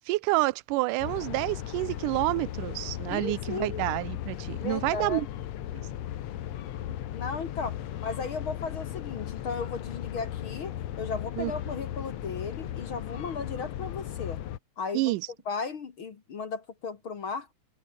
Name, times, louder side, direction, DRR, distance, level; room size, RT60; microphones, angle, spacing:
voice 1, 0.1-5.3 11.4-11.5 14.9-15.2, right 20 dB, 90° right, 2.1 m, -28 dB
sound 1, 1.0-14.6, left 12 dB, 65° left, 2.2 m, -36 dB
voice 2, 3.1-3.8 4.6-5.2 7.1-14.4 14.8-15.1 15.5-17.5, left 5 dB, 45° left, 2.3 m, -35 dB
omnidirectional pair, 3.7 m